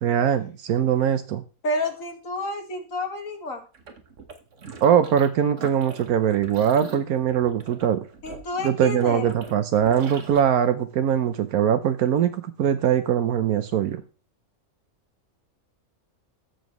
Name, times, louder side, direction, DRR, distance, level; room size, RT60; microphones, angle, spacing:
voice 1, 0.0-1.4 4.8-8.0 8.6-14.0, right 9 dB, 90° right, 1.3 m, -22 dB
voice 2, 1.6-3.6 8.2-9.3, left 2 dB, 65° left, 2.3 m, -29 dB
sound 1, 3.7-5.3 5.6-10.4, right 4 dB, 55° right, 1.7 m, -42 dB
14.0 x 7.0 x 3.1 m
omnidirectional pair, 1.5 m